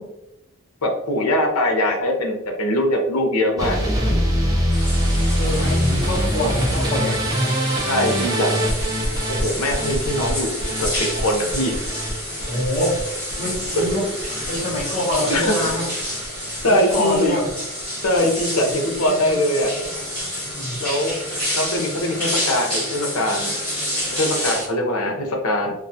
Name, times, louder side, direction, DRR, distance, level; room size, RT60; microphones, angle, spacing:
voice 1, 0.8-4.2 7.8-8.6 9.3-11.8 13.8-13.9 15.3-15.6 16.6-17.3 18.0-19.7 20.8-21.1 21.6-23.5 24.2-25.7, left 1 dB, 85° left, 2 dB, 0.6 m, -22 dB
sound 1, 3.6-15.7 16.0-16.6 16.9-17.5 17.8-18.0 18.4-18.5 18.7-18.8, equal, 15° right, 0.4 m, -24 dB
sound 2, 4.7-24.7, equal, 5° left, 1.4 m, -29 dB
voice 2, 5.4-7.6 12.5-13.0 13.4-14.1 14.4-15.9 16.7-17.5 18.6-19.5 20.4-20.8, left 1 dB, 25° left, -11 dB, 0.7 m, -25 dB
2.4 x 2.2 x 2.6 m, 0.94 s
head